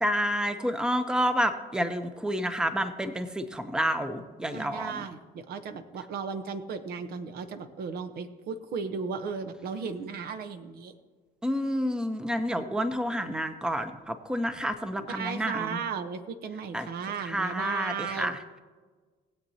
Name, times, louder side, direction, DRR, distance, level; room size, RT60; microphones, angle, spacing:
voice 1, 0.0-4.9 11.4-15.8 16.7-16.9 17.2-18.6, equal, 5° right, 9 dB, 0.7 m, -29 dB
voice 2, 4.5-10.9 15.0-18.4, right 5 dB, 65° right, 8 dB, 0.9 m, -35 dB
19.5 x 7.9 x 2.8 m, 1.4 s
cardioid pair, 110°, 17 cm